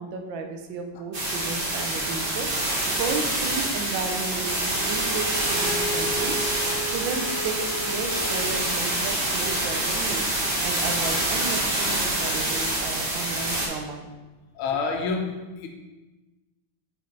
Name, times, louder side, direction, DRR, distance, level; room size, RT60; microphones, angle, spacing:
voice 1, 0.0-6.4 6.8-10.3 10.6-14.1, right 5 dB, 75° right, 4 dB, 1.4 m, -34 dB
sound 1, 1.1-13.7, right 1 dB, 35° right, 1.0 m, -26 dB
Bowed string instrument, 4.7-8.9, equal, 65° left, 1.5 m, -34 dB
voice 2, 14.5-15.7, left 4 dB, 85° left, 4 dB, 1.5 m, -28 dB
4.8 x 4.5 x 4.5 m, 1.1 s
omnidirectional pair, 2.2 m